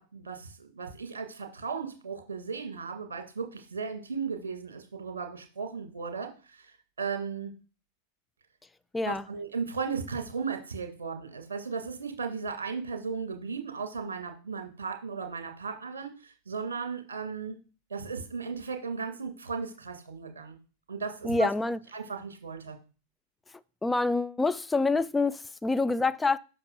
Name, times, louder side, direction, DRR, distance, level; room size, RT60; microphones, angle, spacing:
voice 1, 0.0-6.7 7.0-7.5 9.0-17.6 17.9-20.6 20.9-21.5 21.9-22.8, right 5 dB, 65° right, 1.8 m, -36 dB
voice 2, 21.2-21.8 23.8-26.4, left 3 dB, 10° left, 0.4 m, -26 dB
11.0 x 5.7 x 2.3 m
figure-of-eight pair, 90°, 0 cm